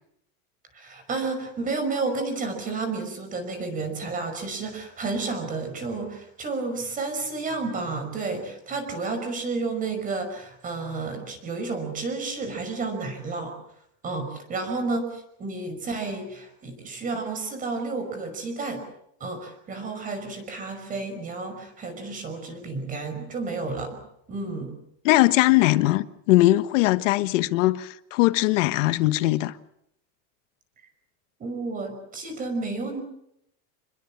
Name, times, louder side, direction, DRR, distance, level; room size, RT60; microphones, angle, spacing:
voice 1, 0.7-13.5 14.0-18.8 19.2-24.0 24.3-24.7 31.4-33.0, right 3 dB, 20° right, 5.5 m, -31 dB
voice 2, 25.0-29.6, left 18 dB, 60° left, 1.3 m, -20 dB
28.0 x 21.5 x 7.4 m
supercardioid pair, 170°, 42 cm